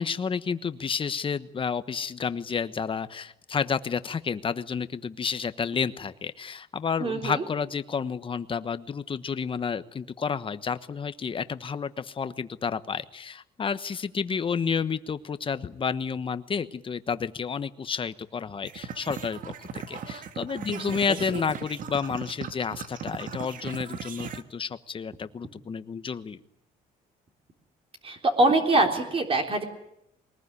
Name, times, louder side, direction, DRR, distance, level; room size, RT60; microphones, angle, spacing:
voice 1, 0.0-26.4, left 6 dB, 30° left, 13 dB, 1.2 m, -30 dB
voice 2, 7.0-7.4 20.7-21.4 28.0-29.6, right 2 dB, 35° right, 3 dB, 3.7 m, -24 dB
sound 1, 18.6-24.4, right 7 dB, 55° right, 1.8 m, -38 dB
22.0 x 20.0 x 9.9 m, 0.79 s
cardioid pair, 110°, 17 cm